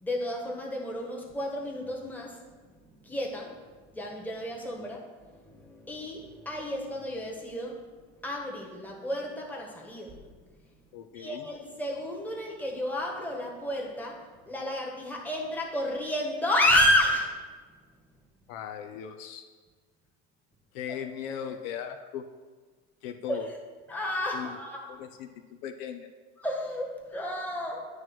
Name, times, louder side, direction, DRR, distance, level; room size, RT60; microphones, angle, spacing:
voice 1, 0.0-3.6 3.9-10.2 11.1-17.4 20.9-21.0 23.3-23.5 23.9-25.0 26.4-27.9, left 1 dB, 5° left, -2 dB, 1.4 m, -31 dB
voice 2, 10.9-11.5 18.5-19.4 20.7-22.2 23.0-23.5 24.3-24.6 24.9-26.1, left 9 dB, 70° left, 6 dB, 0.7 m, -38 dB
9.4 x 3.2 x 6.0 m, 1.4 s
supercardioid pair, 105°, 33 cm